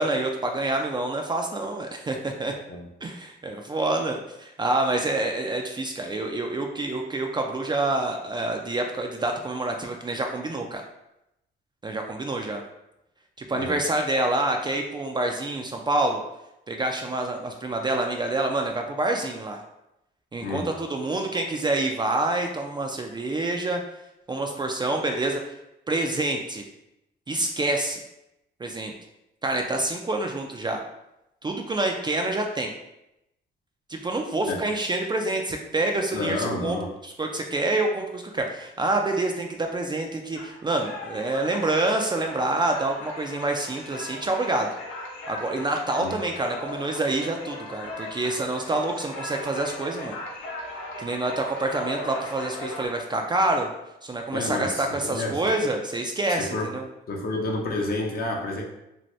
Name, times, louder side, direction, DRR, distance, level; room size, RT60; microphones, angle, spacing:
voice 1, 0.0-2.5 3.0-10.8 11.8-12.6 13.5-16.2 16.7-19.6 20.3-23.8 24.3-25.4 25.9-26.6 27.3-28.0 28.6-28.9 29.4-30.8 31.4-32.7 33.9-36.8 37.0-44.7 45.3-50.2 51.0-53.7 54.0-56.9, right 2 dB, 20° right, 2 dB, 0.3 m, -27 dB
voice 2, 36.1-36.9 46.0-46.2 54.3-55.4 56.4-56.7 57.1-58.6, left 2 dB, 50° left, 0 dB, 0.7 m, -30 dB
sound 1, 40.3-52.9, left 2 dB, 90° left, 0.7 m, -38 dB
2.7 x 2.5 x 3.1 m, 0.87 s
cardioid pair, 90°, 20 cm